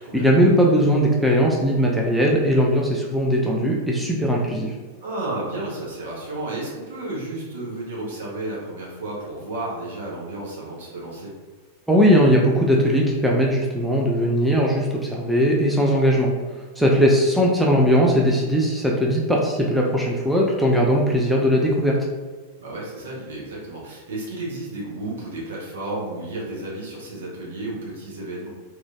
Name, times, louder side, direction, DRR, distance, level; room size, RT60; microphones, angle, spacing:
voice 1, 0.1-4.7 11.9-16.3 16.8-22.0, equal, ahead, -3 dB, 0.4 m, -19 dB
voice 2, 5.0-11.3 16.8-17.0 22.6-28.5, right 2 dB, 60° right, -4 dB, 0.9 m, -32 dB
3.0 x 2.4 x 2.3 m, 1.4 s
figure-of-eight pair, 90°, 0 cm